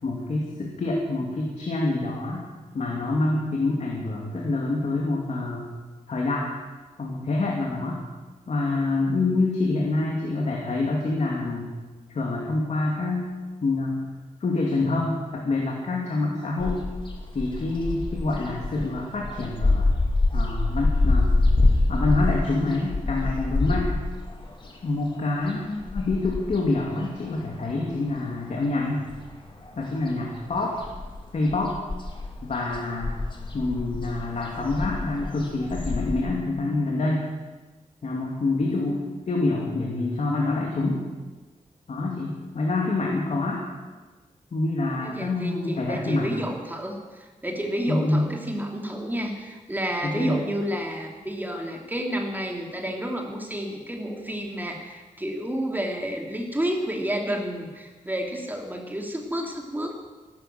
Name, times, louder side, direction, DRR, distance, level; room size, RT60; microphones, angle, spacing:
voice 1, 0.0-2.4 2.7-5.7 6.1-6.5 7.0-8.0 8.5-11.7 12.1-13.3 13.6-14.0 14.4-16.8 17.3-19.9 20.3-21.4 21.9-23.9 24.8-29.0 29.8-30.8 31.3-31.7 32.4-33.1 33.5-37.3 38.0-41.0 41.9-43.6 44.5-46.3 47.9-48.3 50.0-50.4, left 2 dB, 60° left, -1 dB, 2.6 m, -26 dB
sound 1, 16.6-28.2 28.5-29.8 30.1-36.2, left 2 dB, 40° left, 2.6 m, -26 dB
voice 2, 45.0-59.9, equal, 15° right, 1 dB, 2.8 m, -30 dB
15.5 x 12.0 x 7.7 m, 1.3 s
wide cardioid pair, 120°, 13 cm